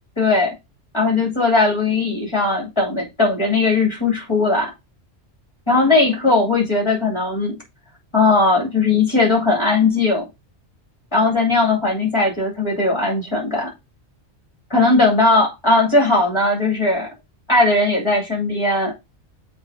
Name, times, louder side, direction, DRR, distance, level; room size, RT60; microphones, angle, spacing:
voice 1, 0.2-0.5 0.9-4.7 5.7-7.6 8.1-10.3 11.1-13.7 14.7-17.1 17.5-18.9, left 3 dB, 25° left, 2.7 m, -18 dB
7.2 x 3.3 x 4.9 m
omnidirectional pair, 1.2 m